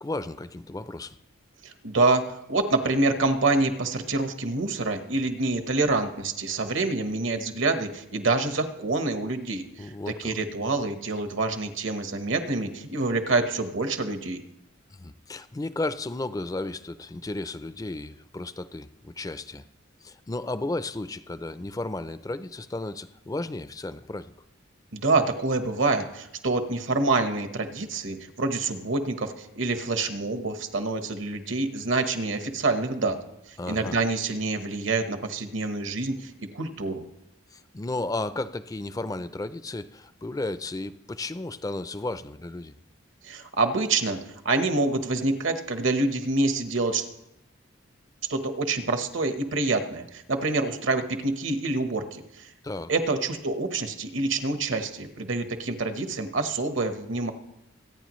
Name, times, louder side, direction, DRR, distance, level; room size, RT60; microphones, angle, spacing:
voice 1, 0.0-1.2 9.8-10.3 14.9-19.6 20.0-24.3 33.6-34.0 37.5-42.8 52.6-52.9, left 2 dB, 20° left, 13 dB, 0.4 m, -34 dB
voice 2, 1.6-9.9 10.2-14.4 24.9-33.2 33.5-37.1 43.2-47.1 48.3-52.5 52.9-57.3, right 3 dB, 70° right, 7 dB, 1.2 m, -27 dB
24.0 x 9.4 x 3.1 m, 0.87 s
head